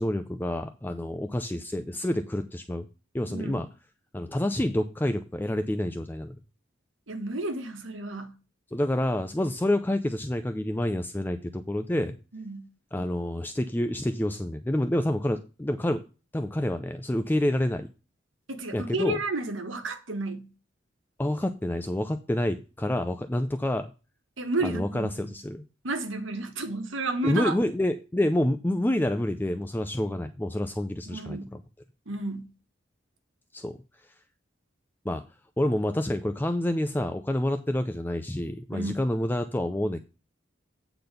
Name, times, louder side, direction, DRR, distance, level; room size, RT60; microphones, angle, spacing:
voice 1, 0.0-2.9 3.1-3.7 4.1-6.4 8.7-12.2 12.9-16.0 16.3-17.9 18.7-19.2 21.2-23.9 24.6-25.6 27.2-31.6 33.5-33.8 35.1-35.2 35.6-40.0, left 1 dB, 10° left, 0.4 m, -28 dB
voice 2, 3.3-3.6 7.1-8.3 12.3-12.7 18.5-20.5 24.4-25.1 25.8-27.5 31.1-31.5 32.1-32.5 38.7-39.0, right 2 dB, 80° right, 1.4 m, -31 dB
8.6 x 4.0 x 6.6 m
head